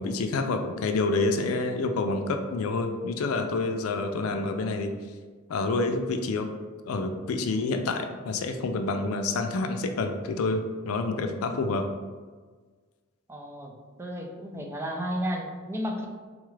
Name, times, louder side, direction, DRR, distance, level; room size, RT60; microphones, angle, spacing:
voice 1, 0.0-4.9 5.5-6.5 6.9-11.8, left 3 dB, 80° left, 6 dB, 0.4 m, -28 dB
voice 2, 13.3-16.1, equal, 10° right, 1 dB, 0.3 m, -33 dB
3.9 x 2.3 x 3.1 m, 1.5 s
head